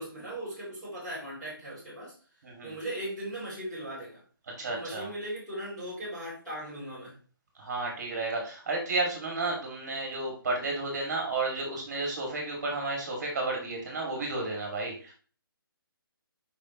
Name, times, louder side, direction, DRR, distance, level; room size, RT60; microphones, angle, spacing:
voice 1, 0.0-2.1 2.6-4.2 4.7-7.2, right 1 dB, 5° left, -10 dB, 2.7 m, -38 dB
voice 2, 2.4-2.7 4.6-5.1 7.6-15.1, right 2 dB, 35° right, 0 dB, 2.0 m, -32 dB
6.6 x 5.2 x 2.9 m, 0.38 s
hypercardioid pair, 175°, 12 cm